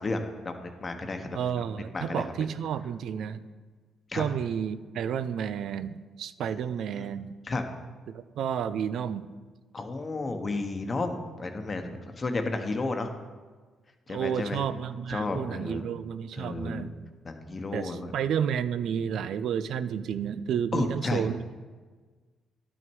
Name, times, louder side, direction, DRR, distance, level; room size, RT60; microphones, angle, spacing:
voice 1, 0.0-1.4 1.9-2.5 4.1-4.3 6.9-7.1 7.4-7.6 9.7-13.1 14.1-14.6 15.1-15.8 16.3-16.9 17.2-18.1 20.7-21.2, left 3 dB, 35° left, 6 dB, 1.0 m, -32 dB
voice 2, 1.3-3.4 4.1-7.3 8.1-9.3 14.1-16.9 17.7-21.6, right 8 dB, 75° right, 13 dB, 0.4 m, -31 dB
11.0 x 6.1 x 4.6 m, 1.4 s
cardioid pair, 90°, 0 cm